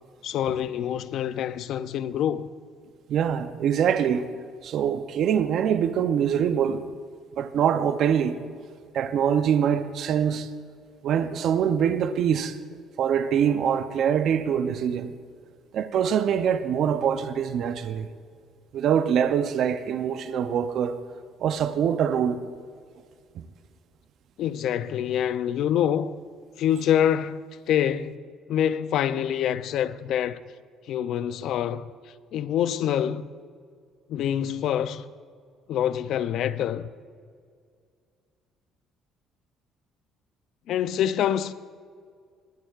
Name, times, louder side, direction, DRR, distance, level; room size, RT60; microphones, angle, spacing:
voice 1, 0.2-2.5 24.4-26.1 26.6-30.4 30.9-31.9 32.3-33.3 34.1-35.0 35.7-36.9 40.7-41.5, left 10 dB, 65° left, 0.4 m, -26 dB
voice 2, 3.1-4.3 4.6-6.8 7.3-8.4 8.9-10.5 11.0-12.6 13.0-15.1 15.7-18.1 18.7-21.0 21.4-22.4, right 8 dB, 60° right, 0.6 m, -24 dB
21.5 x 9.0 x 2.4 m
cardioid pair, 105°, 0 cm